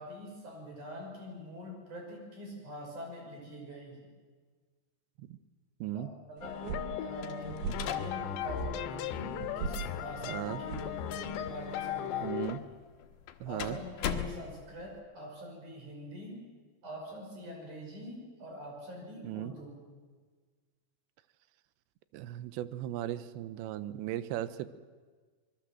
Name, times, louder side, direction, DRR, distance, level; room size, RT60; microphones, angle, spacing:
voice 1, 0.0-4.1 5.8-12.4 13.5-16.4 16.8-19.8, equal, 45° right, 0 dB, 7.4 m, -44 dB
sound 1, 6.4-12.6, left 12 dB, 85° left, 3.2 m, -37 dB
sound 2, 6.4-11.8, right 5 dB, 65° right, 2.0 m, -41 dB
sound 3, 7.2-15.0, left 9 dB, 70° left, 3.1 m, -42 dB
voice 2, 10.2-10.6 12.2-12.6 13.4-13.8 19.2-19.5 22.1-24.7, right 13 dB, 90° right, 14 dB, 3.1 m, -37 dB
25.5 x 21.5 x 7.7 m, 1.5 s
omnidirectional pair, 5.0 m